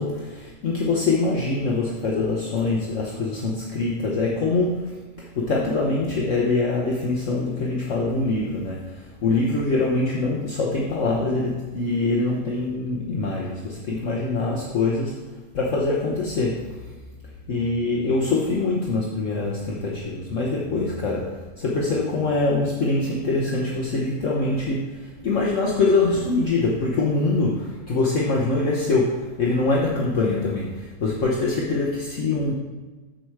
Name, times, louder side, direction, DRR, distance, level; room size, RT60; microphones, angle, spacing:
voice 1, 0.0-16.9 17.2-32.5, left 3 dB, 55° left, -2 dB, 1.3 m, -24 dB
13.0 x 4.8 x 4.6 m, 1.3 s
omnidirectional pair, 1.6 m